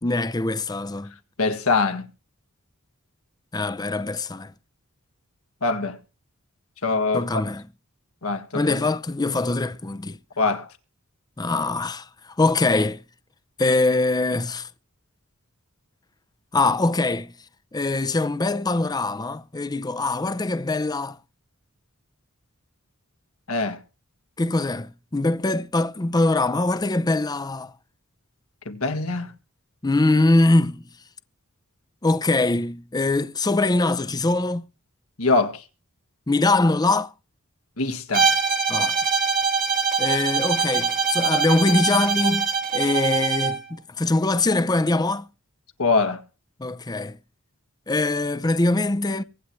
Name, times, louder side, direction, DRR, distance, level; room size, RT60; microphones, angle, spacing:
voice 1, 0.0-1.1 3.5-4.5 7.1-7.7 8.5-10.2 11.4-13.0 13.6-14.7 16.5-17.3 17.7-21.2 24.4-27.7 29.8-30.8 32.0-34.6 36.3-37.1 38.7-39.0 40.0-45.3 46.6-47.2 47.9-49.2, left 2 dB, 20° left, 0.5 m, -23 dB
voice 2, 1.4-2.0 5.6-6.0 6.8-7.4 8.2-8.8 10.4-10.7 23.5-23.8 28.6-29.3 35.2-35.6 37.8-38.3 45.8-46.2, left 3 dB, 75° left, 1.7 m, -23 dB
Bowed string instrument, 38.1-43.6, right 5 dB, 40° right, 1.5 m, -23 dB
24.0 x 9.3 x 3.1 m
head